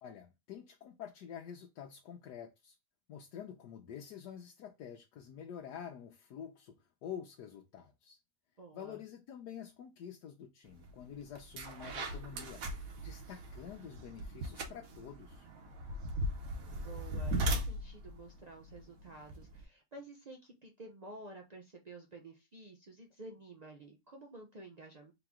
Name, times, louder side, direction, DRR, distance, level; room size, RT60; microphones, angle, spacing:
voice 1, 0.0-2.7 3.1-8.2 8.7-15.5, left 8 dB, 80° left, 1.2 m, -48 dB
voice 2, 8.6-9.0 16.7-25.1, right 2 dB, 85° right, 0.3 m, -51 dB
sound 1, 10.8-11.0 11.4-19.6, right 1 dB, 60° right, 1.3 m, -38 dB
3.8 x 3.0 x 3.5 m
omnidirectional pair, 1.8 m